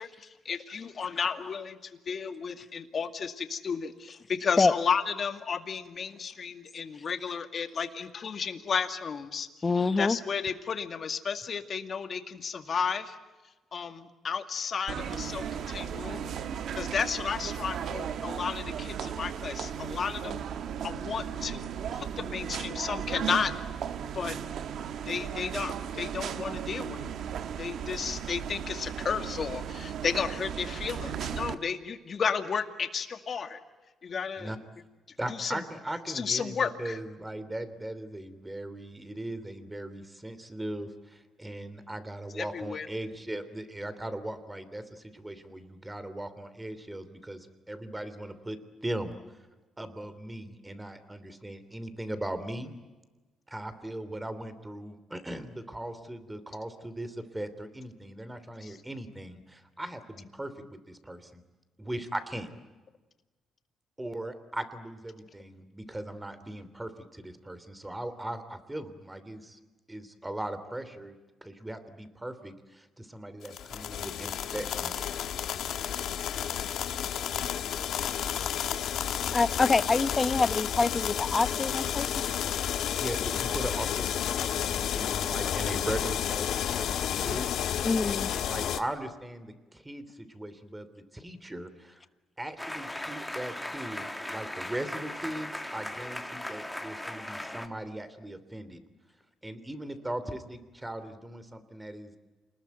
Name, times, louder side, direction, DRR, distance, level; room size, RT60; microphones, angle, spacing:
voice 1, 0.0-9.5 10.0-13.2 13.7-16.3 16.7-20.4 20.8-23.5 24.1-24.4 25.0-27.1 27.6-33.6 34.0-34.5 35.3-35.6 36.1-37.0 42.3-42.9 58.6-58.8 76.3-76.5, left 6 dB, 50° left, 8 dB, 2.2 m, -33 dB
voice 2, 9.6-10.2 79.3-82.3 87.8-88.3, left 3 dB, 30° left, 13 dB, 1.2 m, -25 dB
sound 1, 14.9-31.5, right 8 dB, 70° right, 1.4 m, -36 dB
voice 3, 35.2-49.4 49.8-52.7 53.5-61.4 61.8-62.5 64.0-69.6 69.9-71.2 71.4-75.1 83.0-92.0 92.4-98.8 99.4-102.2, right 1 dB, 10° right, 12 dB, 3.0 m, -39 dB
sound 2, 73.4-88.8, left 9 dB, 75° left, 1.5 m, -31 dB
sound 3, 92.6-97.7, left 1 dB, 5° left, 2.2 m, -38 dB
28.5 x 20.0 x 9.3 m, 1.2 s
cardioid pair, 90°, 0 cm